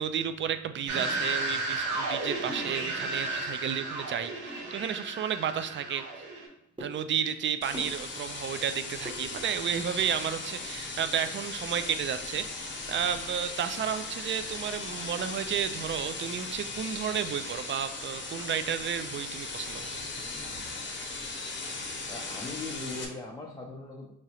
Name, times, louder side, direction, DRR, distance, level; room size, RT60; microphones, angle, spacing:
voice 1, 0.0-6.0 6.8-19.9 20.2-20.4, right 8 dB, 40° right, 11 dB, 0.4 m, -32 dB
sound 1, 0.9-6.5, right 2 dB, 75° right, 1.2 m, -33 dB
sound 2, 5.4-9.9, equal, 15° right, 1.0 m, -48 dB
sound 3, 7.6-23.0, left 3 dB, 40° left, 0.9 m, -38 dB
voice 2, 22.1-24.1, left 3 dB, 15° left, -2 dB, 0.6 m, -40 dB
4.7 x 2.9 x 2.8 m, 0.76 s
cardioid pair, 90°, 30 cm